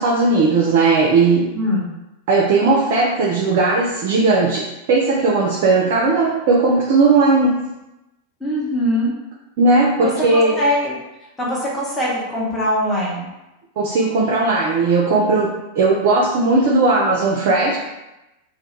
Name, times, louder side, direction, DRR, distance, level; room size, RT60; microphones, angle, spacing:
voice 1, 0.0-1.5 2.3-7.6 9.6-10.6 13.8-17.8, right 3 dB, 50° right, -2 dB, 0.4 m, -17 dB
voice 2, 1.5-1.9 8.4-9.1 10.0-10.9 11.4-13.3, equal, 10° left, -7 dB, 0.8 m, -22 dB
2.2 x 2.1 x 2.9 m, 0.97 s
figure-of-eight pair, 90°, 0 cm